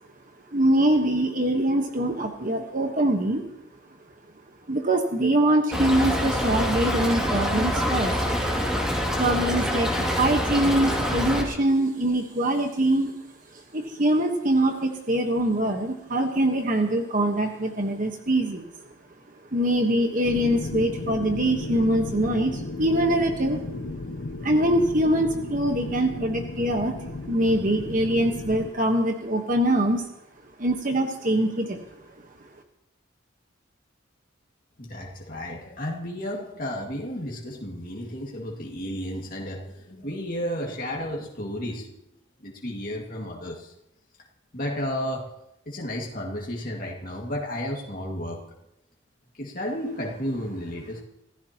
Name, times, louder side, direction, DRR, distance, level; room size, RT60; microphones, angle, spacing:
voice 1, 0.5-3.4 4.7-8.2 9.2-13.1 13.7-18.7 19.5-23.6 24.4-27.0 27.3-30.0 30.6-31.8, right 1 dB, 40° right, 4 dB, 1.3 m, -23 dB
Stream / Trickle dribble, 5.7-11.4, equal, 5° right, 2.5 m, -25 dB
sound 1, 20.2-28.7, left 2 dB, 70° left, 0.8 m, -34 dB
voice 2, 34.8-41.9 42.4-43.7 44.5-45.3 45.7-48.4 49.4-51.0, equal, 45° left, -2 dB, 2.2 m, -32 dB
27.0 x 14.5 x 3.0 m, 0.88 s
head